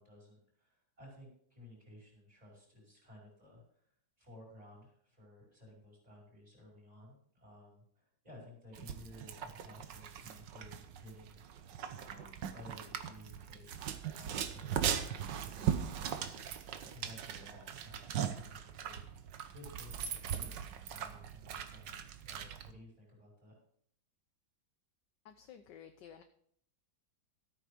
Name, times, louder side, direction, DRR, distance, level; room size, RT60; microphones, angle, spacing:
voice 1, 0.0-3.9 4.2-11.4 11.9-16.1 16.9-23.5, left 1 dB, 20° right, -2 dB, 5.5 m, -56 dB
sound 1, 8.7-22.7, right 8 dB, 70° right, 1.6 m, -39 dB
voice 2, 25.2-26.2, left 8 dB, 70° left, 7 dB, 1.4 m, -53 dB
14.0 x 8.8 x 5.1 m, 0.64 s
omnidirectional pair, 2.1 m